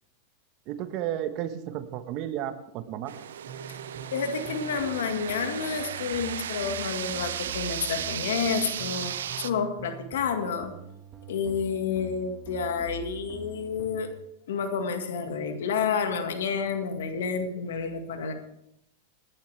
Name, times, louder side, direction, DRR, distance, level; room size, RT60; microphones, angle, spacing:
voice 1, 0.7-3.1, right 11 dB, 45° right, 9 dB, 1.3 m, -33 dB
sound 1, 3.1-9.5, right 10 dB, 85° right, 0.6 m, -35 dB
sound 2, 3.5-14.1, right 6 dB, 30° right, 1.9 m, -45 dB
voice 2, 4.1-10.7 11.3-14.1 14.5-18.3, left 6 dB, 80° left, 6 dB, 1.9 m, -29 dB
18.5 x 11.0 x 3.5 m, 0.81 s
hypercardioid pair, 125°, 0 cm